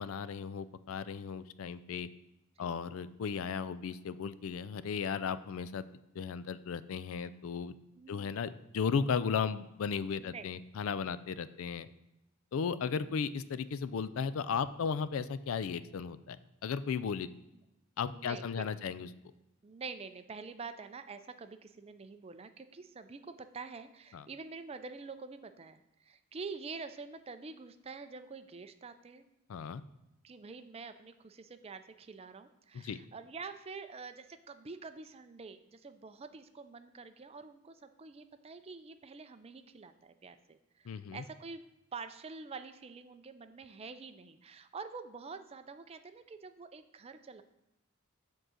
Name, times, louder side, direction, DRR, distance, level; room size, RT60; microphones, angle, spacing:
voice 1, 0.0-2.1 2.6-5.9 6.2-7.7 8.1-11.9 12.5-16.4 16.6-17.3 18.0-19.1 24.1-24.2 29.5-29.8 32.7-33.0 40.9-41.2, left 6 dB, 65° left, 15 dB, 0.4 m, -35 dB
voice 2, 8.0-8.3 10.2-10.5 12.8-13.1 18.1-18.8 19.6-29.2 30.2-41.6 41.9-47.4, right 4 dB, 25° right, 10 dB, 0.4 m, -47 dB
7.7 x 3.7 x 6.3 m, 0.92 s
head